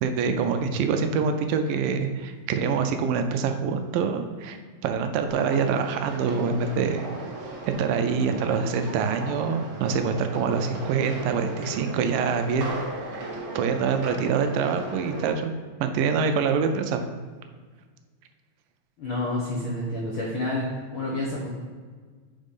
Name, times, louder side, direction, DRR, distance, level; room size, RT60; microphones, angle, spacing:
voice 1, 0.0-7.1 7.8-12.7 13.1-13.3 13.5-15.5 15.8-17.0, right 5 dB, 80° right, 7 dB, 2.2 m, -25 dB
sound 1, 5.3-15.3, right 2 dB, 60° right, 1.3 m, -36 dB
voice 2, 19.0-20.7 20.9-21.5, left 1 dB, 80° left, -4 dB, 1.1 m, -29 dB
5.4 x 5.1 x 5.3 m, 1.5 s
omnidirectional pair, 4.0 m